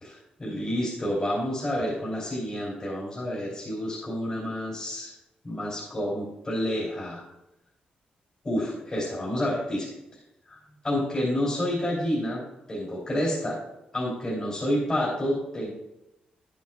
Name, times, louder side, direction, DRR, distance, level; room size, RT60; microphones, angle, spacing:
voice 1, 0.0-5.1 5.4-7.2 8.4-9.9 10.5-10.6 10.8-12.4 12.7-13.6 13.9-15.7, left 1 dB, 25° left, -6 dB, 3.0 m, -29 dB
11.5 x 8.7 x 2.4 m, 0.91 s
cardioid pair, 125°, 3 cm